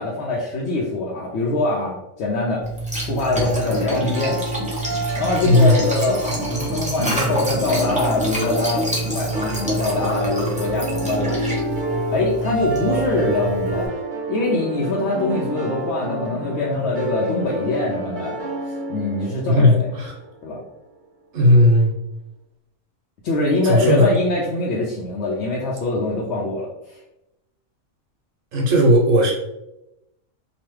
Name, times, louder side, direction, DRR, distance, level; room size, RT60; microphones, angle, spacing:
voice 1, 0.0-2.6 3.0-4.4 5.2-11.4 12.1-14.0 14.3-18.4 18.6-19.9 20.4-20.6 23.2-27.0, left 2 dB, 65° left, -4 dB, 0.8 m, -23 dB
Liquid, 2.6-13.9, right 2 dB, 10° right, 0.3 m, -27 dB
sound 1, 3.4-20.3, right 1 dB, 40° right, 1.0 m, -30 dB
voice 2, 5.4-5.8 19.6-20.1 21.3-21.9 23.6-24.1 28.5-29.3, left 1 dB, 70° right, -1 dB, 1.2 m, -15 dB
3.0 x 2.2 x 3.1 m, 0.90 s
omnidirectional pair, 1.4 m